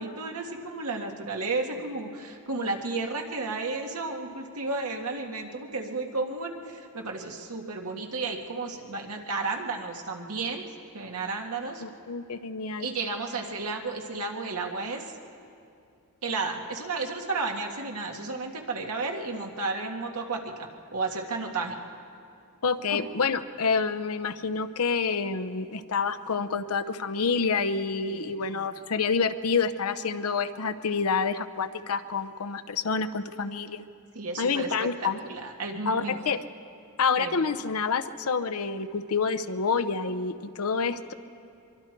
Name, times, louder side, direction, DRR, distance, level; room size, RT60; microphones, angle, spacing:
voice 1, 0.0-10.7 10.9-11.8 12.8-15.1 16.2-21.8 22.9-23.1 28.1-28.4 34.2-34.7 35.0-36.2 37.2-37.4, right 3 dB, 80° right, 2 dB, 1.9 m, -33 dB
voice 2, 11.8-12.9 22.6-33.8 34.4-35.2 35.9-36.4 37.0-41.1, left 5 dB, 70° left, 12 dB, 0.8 m, -28 dB
24.5 x 23.5 x 4.5 m, 2.5 s
head